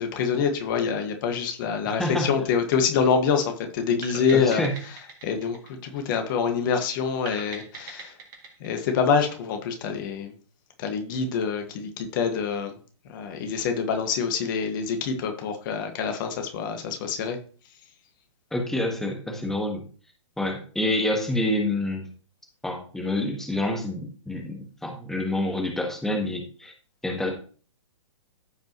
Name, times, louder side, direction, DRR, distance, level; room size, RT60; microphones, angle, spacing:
voice 1, 0.0-4.6 5.2-8.1 8.6-10.3 10.8-12.8 13.1-17.4, left 6 dB, 40° left, 5 dB, 1.8 m, -26 dB
voice 2, 1.9-2.3 4.3-4.7 18.5-19.8 20.4-22.1 22.6-26.7 27.0-27.3, left 1 dB, 5° left, 1 dB, 1.6 m, -27 dB
sound 1, 4.0-6.6 7.3-9.8, right 5 dB, 40° right, 3.1 m, -42 dB
14.5 x 5.3 x 3.1 m, 0.40 s
figure-of-eight pair, 120°, 16 cm